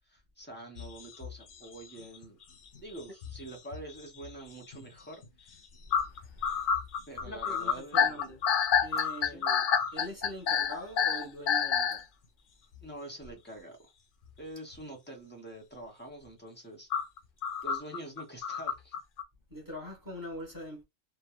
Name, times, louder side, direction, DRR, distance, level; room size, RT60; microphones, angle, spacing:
voice 1, 0.1-2.4 2.8-5.6 7.1-8.3 9.2-9.4 12.8-13.8 14.4-16.9 17.6-18.9, right 1 dB, 10° left, 0.6 m, -46 dB
sound 1, 0.8-2.4 2.7-4.3 4.7-4.9 5.2-5.3 5.9-12.0 12.7-12.8 14.7-14.8 16.9-19.2, left 7 dB, 70° left, 0.5 m, -29 dB
voice 2, 5.9-6.7 7.2-8.4 8.8-9.6 9.9-12.0 17.7-17.8 19.5-20.8, equal, 15° right, 0.9 m, -43 dB
3.1 x 2.1 x 2.3 m
omnidirectional pair, 1.5 m